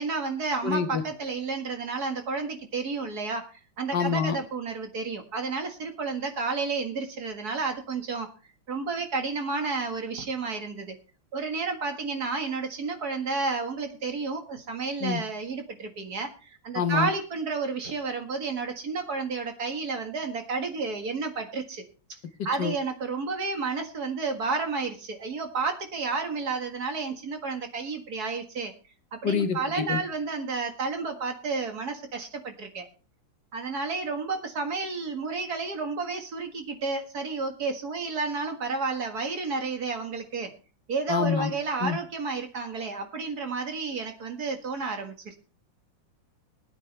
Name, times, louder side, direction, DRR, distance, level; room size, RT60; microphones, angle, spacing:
voice 1, 0.0-3.5 3.8-8.3 8.7-10.9 11.3-21.8 22.5-28.7 29.1-32.9 33.5-40.5 40.9-45.4, right 4 dB, 55° right, 5 dB, 2.3 m, -31 dB
voice 2, 0.6-1.0 3.9-4.4 15.0-15.2 16.8-17.1 22.6-22.7 29.2-30.0 41.1-41.5 41.8-42.0, left 6 dB, 70° left, 7 dB, 1.8 m, -26 dB
20.5 x 9.4 x 3.3 m, 0.35 s
omnidirectional pair, 2.0 m